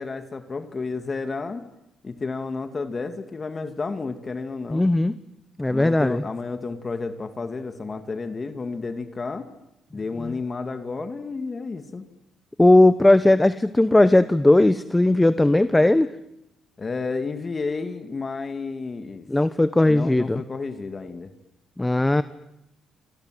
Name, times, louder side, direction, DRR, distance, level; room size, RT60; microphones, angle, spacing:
voice 1, 0.0-1.6 2.0-4.9 5.7-9.5 9.9-12.0 16.8-19.2 19.8-21.3, left 4 dB, 35° left, 9 dB, 2.4 m, -31 dB
voice 2, 4.7-5.1 5.6-6.2 10.2-10.3 12.6-16.1 19.3-20.4 21.8-22.2, left 2 dB, 10° left, 14 dB, 1.0 m, -18 dB
28.0 x 26.5 x 7.9 m, 0.88 s
cardioid pair, 90°, 0 cm